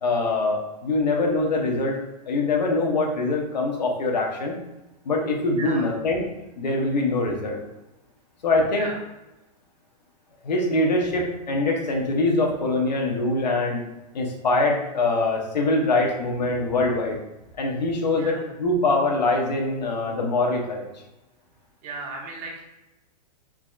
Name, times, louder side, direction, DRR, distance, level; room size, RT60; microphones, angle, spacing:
voice 1, 0.0-2.0 2.3-4.6 5.0-6.2 6.6-7.6 8.4-8.9 10.4-13.8 14.1-17.2 17.6-20.9, left 2 dB, 90° left, 1 dB, 1.0 m, -23 dB
voice 2, 5.6-5.9 8.7-8.9 18.2-18.5 21.8-22.6, right 3 dB, 35° right, -1 dB, 1.0 m, -35 dB
4.8 x 2.8 x 2.4 m, 0.98 s
hypercardioid pair, 125°, 21 cm